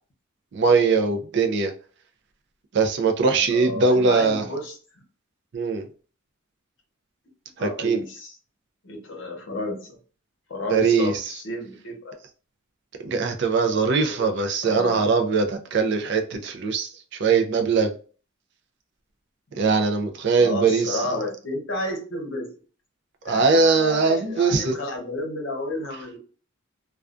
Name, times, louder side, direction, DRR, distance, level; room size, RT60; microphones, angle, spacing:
voice 1, 0.5-1.7 2.7-4.4 5.5-5.9 7.6-8.0 10.7-11.1 13.0-16.9 17.2-17.9 19.6-21.0 23.3-24.7, right 4 dB, 55° right, 0.4 m, -21 dB
voice 2, 3.5-4.8 7.6-8.4 8.8-10.0 10.5-12.2 14.0-14.2 14.6-15.1 20.4-22.5 23.2-26.2, left 1 dB, 60° left, 0.8 m, -31 dB
2.3 x 2.2 x 2.4 m
head